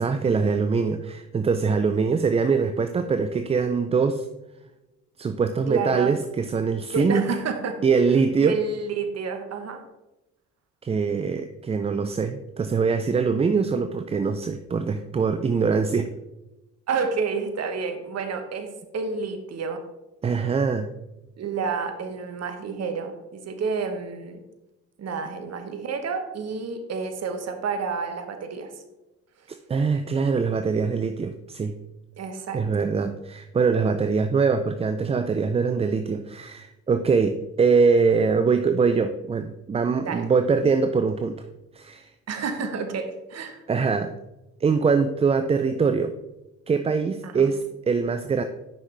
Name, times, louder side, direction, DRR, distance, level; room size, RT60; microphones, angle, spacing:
voice 1, 0.0-4.3 5.2-7.3 7.8-8.6 10.8-16.1 20.2-20.9 29.7-31.7 32.5-41.4 41.7-42.1 43.7-44.1 44.6-46.1 46.7-48.4, right 5 dB, 20° right, 8 dB, 0.3 m, -23 dB
voice 2, 5.7-6.1 6.9-7.8 8.4-9.8 16.9-18.7 18.9-19.8 21.4-24.4 25.0-28.7 32.2-32.9 40.0-40.3 42.3-43.6 47.2-47.5, right 5 dB, 45° right, 6 dB, 1.0 m, -29 dB
6.3 x 5.5 x 3.3 m, 0.98 s
hypercardioid pair, 55°, 35 cm